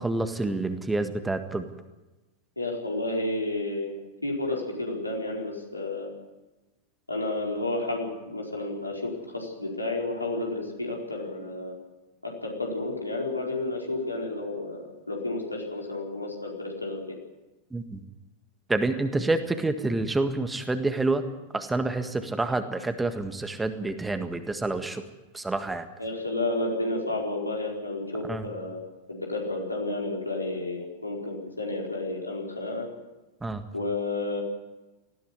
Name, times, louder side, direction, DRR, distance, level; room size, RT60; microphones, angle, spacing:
voice 1, 0.0-1.6 17.7-18.0 18.7-21.2 21.5-25.0 25.3-25.9 28.3-28.5 33.4-33.6, right 2 dB, 10° right, 8 dB, 1.7 m, -28 dB
voice 2, 2.6-3.9 4.2-6.1 7.1-11.8 12.2-17.2 26.0-32.9 33.7-34.4, left 2 dB, 85° left, -1 dB, 4.5 m, -31 dB
19.5 x 15.0 x 9.9 m, 1.1 s
figure-of-eight pair, 90°, 0 cm